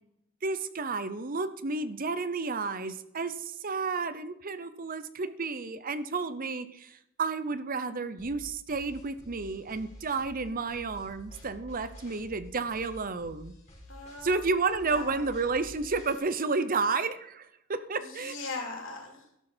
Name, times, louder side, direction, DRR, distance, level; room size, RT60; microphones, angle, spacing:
voice 1, 0.4-13.5 14.2-18.3, right 4 dB, 45° right, 13 dB, 0.8 m, -31 dB
sound 1, 8.2-16.2, equal, 30° left, 5.0 m, -49 dB
voice 2, 13.9-14.5 14.8-15.3 18.0-19.4, left 3 dB, 65° left, 1 dB, 3.1 m, -40 dB
12.5 x 11.5 x 4.5 m, 0.78 s
head